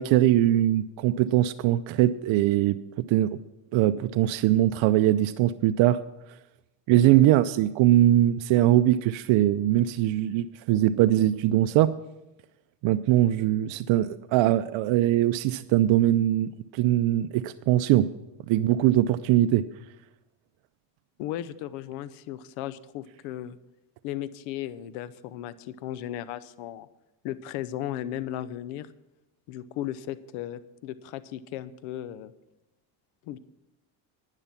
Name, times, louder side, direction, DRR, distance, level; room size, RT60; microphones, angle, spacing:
voice 1, 0.0-2.8 3.1-3.4 3.7-6.0 6.9-11.9 12.8-18.1 18.5-19.6, right 13 dB, 65° right, 10 dB, 0.6 m, -21 dB
voice 2, 21.2-23.6 24.0-26.9 27.2-28.9 29.5-32.3 33.3-33.4, left 12 dB, 90° left, 16 dB, 0.8 m, -36 dB
10.5 x 10.0 x 5.7 m, 0.94 s
supercardioid pair, 90°, 50 cm